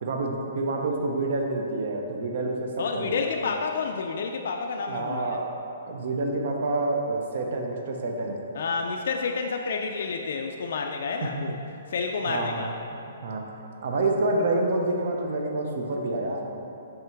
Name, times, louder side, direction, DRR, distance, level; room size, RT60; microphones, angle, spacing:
voice 1, 0.0-2.7 2.9-3.2 4.9-5.5 5.9-8.3 11.2-11.3 12.2-12.7 13.2-13.4 13.8-16.6, right 2 dB, 55° right, 1 dB, 0.7 m, -28 dB
voice 2, 2.8-5.4 8.5-11.6 11.9-12.7, left 5 dB, 65° left, 2 dB, 0.3 m, -29 dB
5.6 x 3.7 x 4.5 m, 2.7 s
hypercardioid pair, 155°, 0 cm